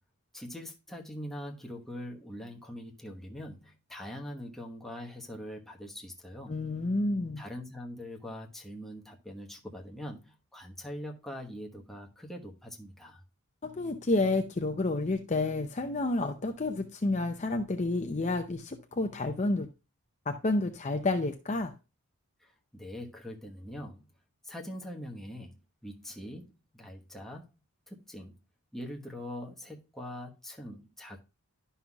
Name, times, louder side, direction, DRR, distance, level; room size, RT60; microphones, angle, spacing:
voice 1, 0.3-6.6 7.4-13.2 22.4-24.1 24.4-27.5 27.9-28.3 28.7-31.2, left 1 dB, ahead, 1.1 m, -43 dB
voice 2, 6.5-7.4 13.6-19.7 20.3-21.7, left 2 dB, 30° left, 0.6 m, -30 dB
11.5 x 5.6 x 2.3 m
head